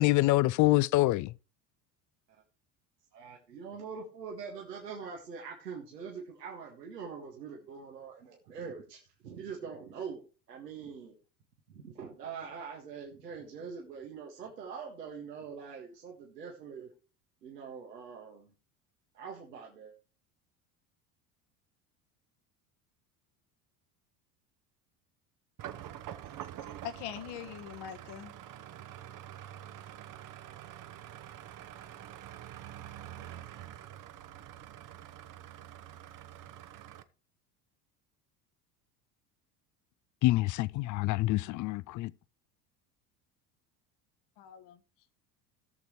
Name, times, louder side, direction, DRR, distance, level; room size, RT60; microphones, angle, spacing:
voice 1, 0.0-1.3 40.2-42.1, left 18 dB, 40° left, 0.5 m, -26 dB
voice 2, 3.1-10.2 10.5-11.2 11.7-16.9 17.4-18.5 19.1-19.9, right 6 dB, 85° right, 1.9 m, -43 dB
sound 1, 25.6-37.0, right 11 dB, 40° right, 1.0 m, -46 dB
voice 3, 26.8-28.3 44.4-44.8, left 10 dB, 60° left, 1.4 m, -42 dB
18.0 x 6.7 x 3.1 m
hypercardioid pair, 75°, 47 cm